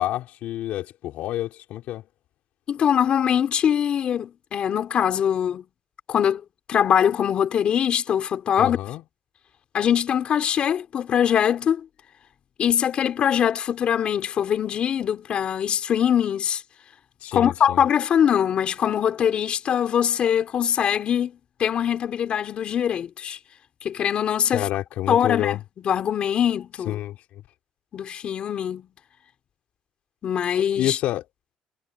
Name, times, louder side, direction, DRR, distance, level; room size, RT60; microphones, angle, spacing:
voice 1, 0.0-2.0 8.6-9.0 17.2-17.8 24.5-25.6 26.8-27.4 30.7-31.2, left 14 dB, 70° left, 4.3 m, -28 dB
voice 2, 2.7-5.6 6.1-6.4 6.7-8.8 9.7-11.8 12.6-16.6 17.3-23.4 23.8-24.6 25.1-27.0 27.9-28.9 30.2-31.0, left 9 dB, 45° left, 4.3 m, -22 dB
cardioid pair, 150°, 3 cm